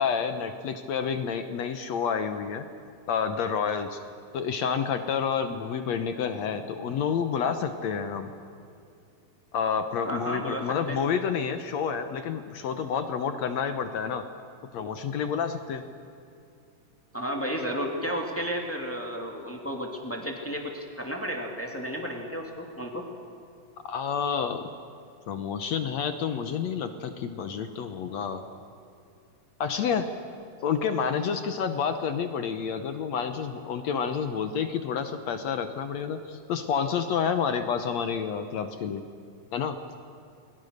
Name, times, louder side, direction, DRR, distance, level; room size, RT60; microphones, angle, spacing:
voice 1, 0.0-2.7 3.1-4.0 4.3-8.3 9.5-14.2 14.7-15.8 23.9-24.6 25.3-28.4 29.6-30.1 30.6-39.0 39.5-39.8, left 7 dB, 65° left, 8 dB, 1.8 m, -29 dB
voice 2, 10.0-11.0 17.1-23.1, equal, 5° left, 1 dB, 2.1 m, -33 dB
30.0 x 21.5 x 6.6 m, 2.6 s
omnidirectional pair, 4.1 m